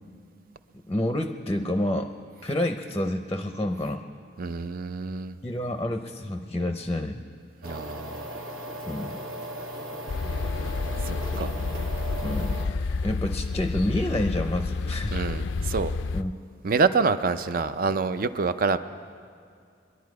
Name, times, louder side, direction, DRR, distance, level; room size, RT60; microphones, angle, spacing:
voice 1, 0.9-2.1 2.4-4.1 5.4-7.2 8.9-9.2 12.2-12.7 13.0-15.1 16.1-16.3, left 1 dB, 15° left, 6 dB, 0.6 m, -28 dB
voice 2, 4.4-5.3 7.6-8.2 11.1-11.5 15.1-15.9 16.6-18.8, right 4 dB, 50° right, 12 dB, 0.5 m, -26 dB
sound 1, 7.6-12.7, right 1 dB, 90° right, 2.0 m, -37 dB
sound 2, 10.1-16.2, left 3 dB, 70° left, 0.4 m, -29 dB
23.0 x 11.0 x 4.7 m, 2.3 s
head